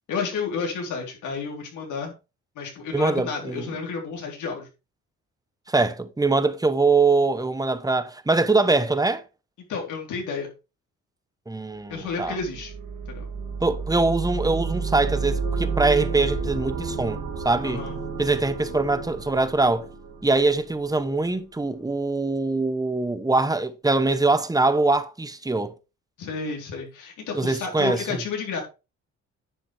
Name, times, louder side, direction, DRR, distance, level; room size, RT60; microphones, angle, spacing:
voice 1, 0.1-2.1 2.6-4.7 9.7-10.5 11.9-12.7 13.1-13.3 17.6-18.0 26.2-28.6, left 5 dB, 80° left, 4.0 m, -31 dB
voice 2, 2.9-3.7 5.7-9.2 11.5-12.4 13.6-17.8 18.2-19.9 20.2-25.7 27.3-28.2, right 3 dB, 10° right, 1.1 m, -23 dB
sound 1, 12.0-20.9, right 5 dB, 75° right, 2.4 m, -31 dB
10.5 x 7.3 x 3.5 m
cardioid pair, 90°, 30 cm